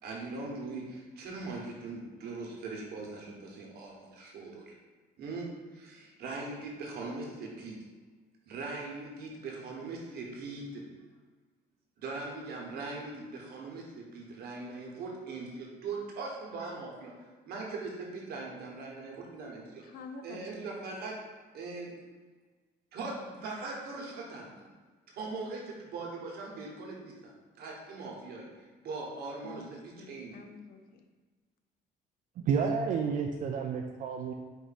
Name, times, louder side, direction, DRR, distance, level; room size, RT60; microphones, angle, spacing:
voice 1, 0.0-4.7 5.2-7.8 8.5-10.8 12.0-19.8 20.2-21.2 21.5-21.9 22.9-24.7 25.1-30.4, right 3 dB, 70° right, -2 dB, 1.1 m, -41 dB
voice 2, 19.8-20.6 29.4-31.1, left 4 dB, 60° left, 5 dB, 0.5 m, -48 dB
voice 3, 32.4-34.3, right 6 dB, 50° right, 2 dB, 0.4 m, -30 dB
4.5 x 2.6 x 4.1 m, 1.4 s
cardioid pair, 110°, 17 cm